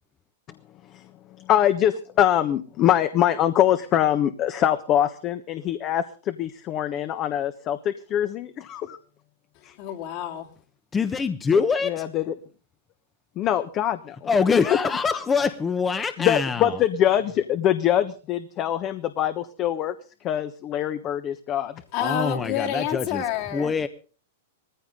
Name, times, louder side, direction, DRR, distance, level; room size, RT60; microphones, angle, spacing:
voice 1, 1.5-9.0 9.6-9.7 11.9-12.2 13.4-14.2 16.2-19.9 20.2-21.7, left 11 dB, 35° left, 10 dB, 1.2 m, -23 dB
voice 2, 9.8-10.5 21.9-23.7, left 9 dB, 50° left, 1 dB, 3.3 m, -28 dB
voice 3, 10.9-12.0 14.2-16.8 22.0-23.3 23.5-23.9, left 5 dB, 20° left, 10 dB, 1.1 m, -24 dB
19.0 x 15.0 x 3.9 m, 0.38 s
hypercardioid pair, 110°, 0 cm